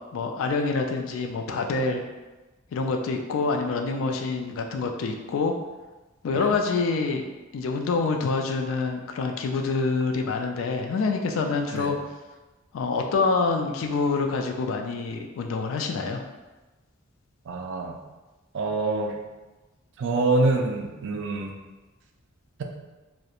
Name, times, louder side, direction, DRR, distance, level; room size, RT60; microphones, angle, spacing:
voice 1, 0.1-2.0 2.7-5.5 6.2-7.2 7.5-12.0 12.7-16.2, left 4 dB, 65° left, 3 dB, 0.3 m, -26 dB
voice 2, 17.5-18.0 18.5-19.1 20.0-21.5, right 3 dB, 60° right, 3 dB, 0.3 m, -25 dB
2.8 x 2.1 x 2.4 m, 1.1 s
head